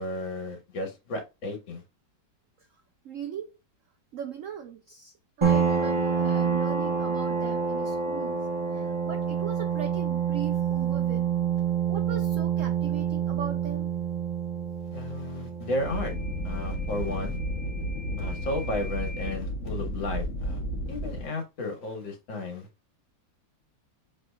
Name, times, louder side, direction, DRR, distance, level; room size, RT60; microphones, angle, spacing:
voice 1, 0.0-1.8 14.9-16.1 16.4-17.4 18.2-20.6 20.9-22.7, left 2 dB, 70° left, 2.2 m, -33 dB
voice 2, 3.0-3.6 4.1-11.3 11.9-13.9, right 7 dB, 90° right, 0.6 m, -39 dB
sound 1, 5.4-18.7, right 7 dB, 25° right, 0.6 m, -28 dB
sound 2, 15.8-21.2, equal, 50° left, 1.2 m, -32 dB
6.7 x 3.2 x 2.3 m
omnidirectional pair, 2.1 m